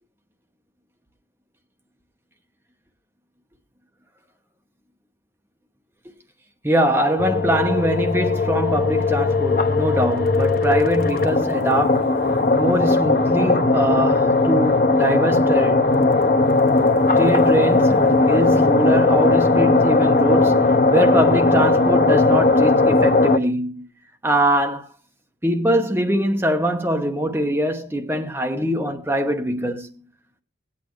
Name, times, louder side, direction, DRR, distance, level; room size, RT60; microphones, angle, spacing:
voice 1, 6.6-12.1 12.5-15.9 17.2-23.9 24.2-24.9 25.4-29.9, right 1 dB, 10° right, 0.9 m, -22 dB
sound 1, 7.2-23.4, left 3 dB, 50° left, 0.9 m, -18 dB
18.0 x 8.5 x 3.1 m
head